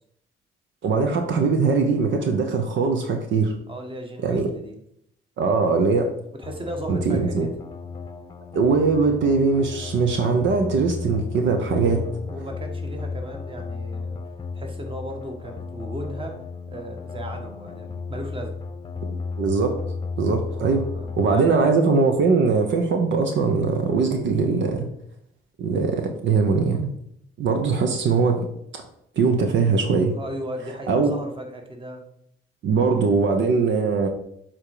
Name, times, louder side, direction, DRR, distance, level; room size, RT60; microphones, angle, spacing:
voice 1, 0.8-3.5 4.2-4.5 5.4-6.1 6.9-7.5 8.5-12.0 19.0-19.8 20.2-20.9 21.2-24.9 25.6-26.9 27.4-28.5 28.7-28.8 29.2-30.1 30.9-31.1 32.6-34.1, right 4 dB, 70° right, 5 dB, 0.9 m, -21 dB
voice 2, 3.7-4.7 6.3-7.5 11.8-14.2 14.5-16.4 16.7-18.6 20.9-21.5 30.1-32.0, right 1 dB, 25° right, 3 dB, 1.5 m, -36 dB
sound 1, 6.4-21.4, left 4 dB, 20° left, 0.9 m, -34 dB
7.2 x 3.8 x 4.9 m, 0.72 s
cardioid pair, 90°, 20 cm